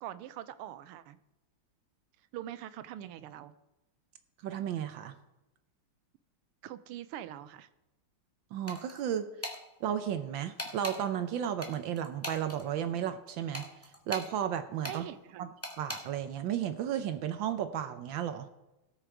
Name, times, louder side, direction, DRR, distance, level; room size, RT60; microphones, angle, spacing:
voice 1, 0.0-1.2 2.3-3.5 6.6-7.7 14.8-15.5, right 12 dB, 85° right, 14 dB, 1.6 m, -43 dB
voice 2, 4.4-5.1 8.5-9.3 9.8-13.7 14.1-15.1 15.4-15.5 15.8-18.5, right 9 dB, 70° right, 10 dB, 1.3 m, -33 dB
sound 1, 8.7-9.0 9.4-9.6 10.6-11.0 11.6-12.6 13.5-14.3 14.8-15.0 15.6-16.0, left 1 dB, 5° left, 1.5 m, -39 dB
17.5 x 6.6 x 4.6 m, 0.98 s
omnidirectional pair, 2.4 m